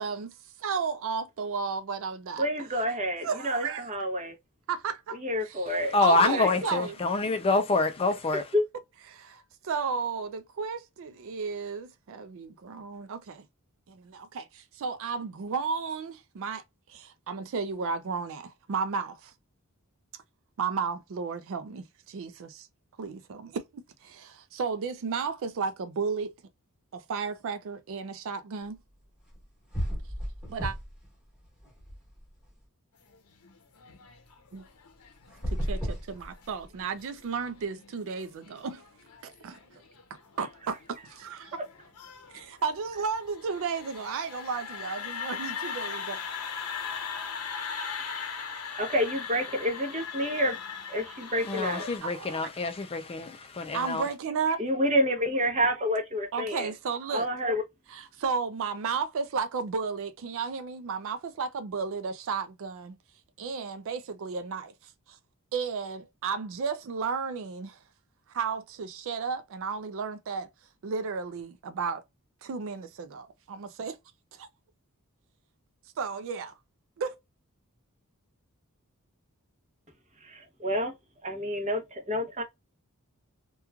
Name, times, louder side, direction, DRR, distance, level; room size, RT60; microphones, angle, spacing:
voice 1, 0.0-2.5 3.2-3.9 4.7-5.2 5.4-5.7 6.0-6.9 9.1-13.4 13.9-16.6 16.9-19.3 20.6-22.7 23.0-26.3 26.9-28.8 30.5-30.8 34.5-34.6 35.5-38.8 39.2-39.6 40.4-40.8 41.0-41.6 42.3-46.2 52.0-52.5 53.7-54.6 56.3-57.3 57.9-62.9 63.4-65.2 65.5-67.8 68.3-70.5 70.8-72.0 72.4-74.0 74.3-74.5 76.0-76.5 77.0-77.2, right 5 dB, 60° right, 0.4 m, -33 dB
voice 2, 2.4-4.3 5.1-6.0 6.3-6.6 8.5-8.6 48.8-50.6 50.9-51.9 54.6-56.7 57.1-57.6 80.2-80.9 81.2-82.4, equal, 30° right, 0.8 m, -28 dB
voice 3, 5.9-8.5 51.4-53.3 53.6-54.1, left 3 dB, 25° left, 0.4 m, -26 dB
sound 1, 29.3-29.4 29.7-31.1 31.4-32.5 35.2-36.8, equal, ahead, 1.2 m, -33 dB
sound 2, 33.1-52.0, left 6 dB, 90° left, 0.7 m, -40 dB
3.0 x 2.3 x 2.3 m
head